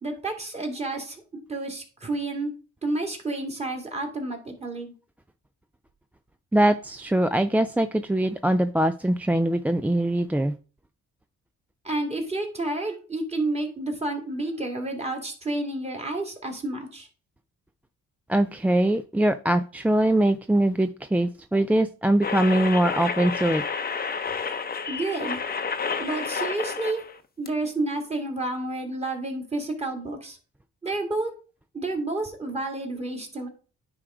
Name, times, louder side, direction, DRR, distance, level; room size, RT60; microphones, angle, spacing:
voice 1, 0.0-1.2 1.5-2.5 2.8-4.9 11.8-17.1 24.9-25.4 26.0-27.0 27.4-30.4 30.8-31.3 31.7-33.5, right 2 dB, 20° right, 1 dB, 2.3 m, -30 dB
voice 2, 6.5-10.5 18.3-23.6, right 1 dB, 5° right, 9 dB, 0.3 m, -22 dB
sound 1, 22.2-27.2 27.5-27.6, left 5 dB, 30° left, 0.7 m, -30 dB
9.7 x 3.2 x 4.9 m, 0.36 s
cardioid pair, 95°, 30 cm